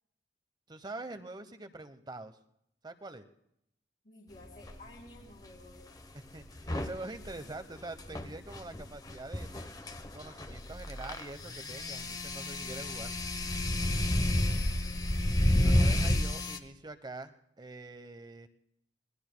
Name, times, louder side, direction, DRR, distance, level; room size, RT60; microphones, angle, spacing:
voice 1, 0.7-2.4 2.8-3.2 6.3-9.7 10.1-13.2 15.6-18.5, right 2 dB, 25° right, 9 dB, 0.9 m, -44 dB
voice 2, 4.0-6.0 14.1-15.0, left 2 dB, 50° left, -4 dB, 3.4 m, -54 dB
sound 1, 4.6-4.8 6.6-16.6, left 1 dB, 20° left, 0.9 m, -30 dB
26.0 x 20.0 x 2.2 m, 0.76 s
head